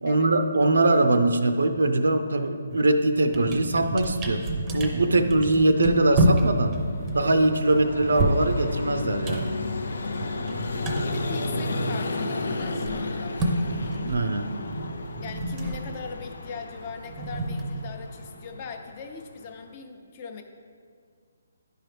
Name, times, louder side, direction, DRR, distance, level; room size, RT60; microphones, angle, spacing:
voice 1, 0.0-4.4 4.7-6.8 7.1-9.5 14.0-14.5, right 2 dB, 80° right, 9 dB, 0.6 m, -22 dB
sound 1, 2.7-2.9 3.2-12.1 12.3-18.3, right 1 dB, 15° right, 0.7 m, -29 dB
Vehicle, 5.0-19.7, left 2 dB, 75° left, 0.5 m, -33 dB
voice 2, 5.1-5.5 11.0-13.4 15.2-20.4, left 5 dB, 35° left, 5 dB, 0.7 m, -40 dB
10.0 x 4.7 x 3.3 m, 2.1 s
hypercardioid pair, 155°, 0 cm